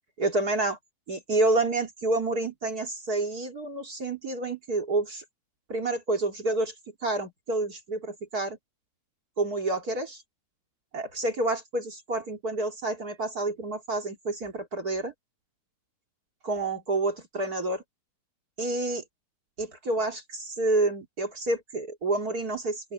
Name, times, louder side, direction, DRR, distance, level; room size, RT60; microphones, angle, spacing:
voice 1, 0.2-0.8 1.1-5.2 5.7-6.7 7.0-8.6 9.4-10.2 10.9-15.1 16.4-17.8 18.6-19.0 19.6-22.9, right 2 dB, 25° right, 2.2 m, -29 dB
open air
omnidirectional pair, 5.5 m